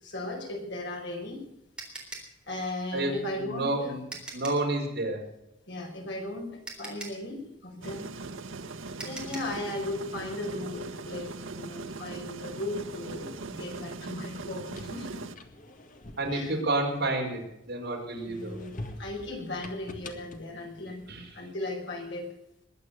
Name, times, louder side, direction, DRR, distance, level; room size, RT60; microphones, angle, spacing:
voice 1, 0.0-1.5 2.5-3.9 5.7-6.5 6.8-8.1 9.0-15.3 16.3-16.5 18.2-21.1 21.3-22.3, left 1 dB, 65° left, 2 dB, 5.1 m, -37 dB
sound 1, 0.9-4.7 6.1-6.2 6.6-9.6, right 2 dB, 5° right, 3.8 m, -43 dB
voice 2, 2.9-4.0 4.3-5.2 16.2-18.6 21.1-21.3, right 2 dB, 55° right, 0 dB, 5.0 m, -30 dB
sound 2, 7.8-15.3, right 3 dB, 85° right, 1.1 m, -40 dB
sound 3, 14.4-17.6 18.1-21.5, left 1 dB, 40° left, 1.9 m, -46 dB
21.5 x 9.0 x 6.7 m, 0.85 s
head